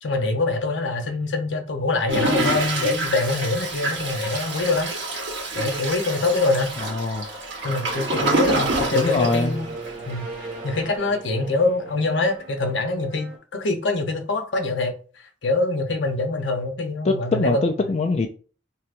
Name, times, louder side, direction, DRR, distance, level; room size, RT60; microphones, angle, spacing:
voice 1, 0.0-4.9 5.6-6.7 7.6-9.7 10.1-10.3 10.6-14.9 15.4-17.6, left 3 dB, 75° left, 0.7 m, -24 dB
Toilet flush, 2.1-10.1 10.6-10.7 10.9-11.0, right 2 dB, 65° right, 1.3 m, -27 dB
voice 2, 6.8-7.3 8.9-9.6 17.0-18.3, left 3 dB, 35° left, 0.3 m, -23 dB
sound 1, 7.6-13.4, right 3 dB, 35° right, 1.7 m, -37 dB
4.6 x 2.8 x 2.5 m
head